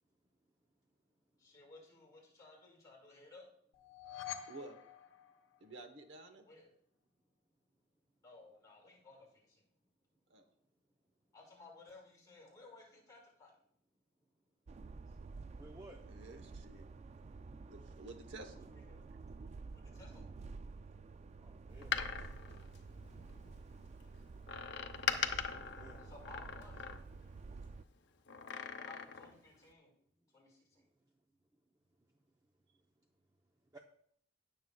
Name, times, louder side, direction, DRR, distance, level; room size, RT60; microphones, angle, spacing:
voice 1, 1.4-3.5 6.5-6.7 8.2-9.7 11.3-13.5 15.1-15.2 18.7-19.0 19.7-20.2 26.0-26.8 28.8-29.9 30.3-30.9, left 3 dB, 20° left, -4 dB, 4.7 m, -58 dB
sound 1, 3.7-6.0, left 10 dB, 85° left, 1.0 m, -48 dB
voice 2, 5.6-6.5 10.3-10.4 16.1-16.9 17.7-18.6, right 2 dB, 70° right, 6 dB, 1.1 m, -51 dB
sound 2, 14.7-27.8, right 4 dB, 35° right, 0.3 m, -51 dB
voice 3, 15.6-16.0 21.4-22.4 25.7-26.1 33.7-33.8, right 1 dB, 20° right, 1 dB, 0.7 m, -56 dB
Door, 21.7-23.5 24.5-27.3 28.3-29.4 29.7-29.8, left 7 dB, 60° left, 0.7 m, -41 dB
19.0 x 7.0 x 2.3 m, 0.65 s
head